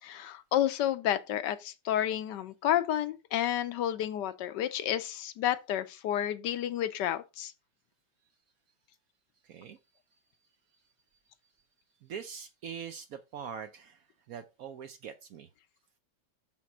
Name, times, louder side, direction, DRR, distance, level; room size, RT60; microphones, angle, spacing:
voice 1, 0.0-7.5, left 11 dB, 75° left, 1.3 m, -30 dB
voice 2, 9.4-9.8 12.0-15.5, right 7 dB, 70° right, 0.9 m, -43 dB
6.2 x 5.8 x 4.2 m
omnidirectional pair, 2.0 m